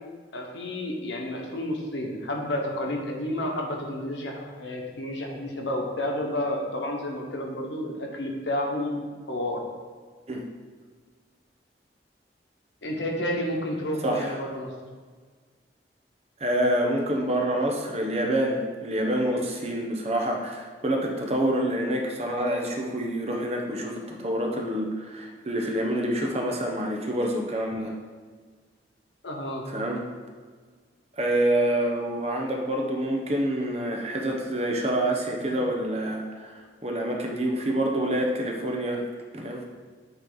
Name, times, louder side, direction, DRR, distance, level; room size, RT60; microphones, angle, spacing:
voice 1, 0.3-9.0 9.3-9.6 12.8-14.7 29.2-29.7 35.4-35.5, left 1 dB, 90° left, 1 dB, 1.1 m, -30 dB
voice 2, 14.0-14.4 16.4-27.9 29.7-30.0 31.2-36.5 36.8-39.0 39.3-39.6, right 1 dB, 35° right, 1 dB, 0.8 m, -27 dB
9.2 x 3.2 x 3.9 m, 1.5 s
head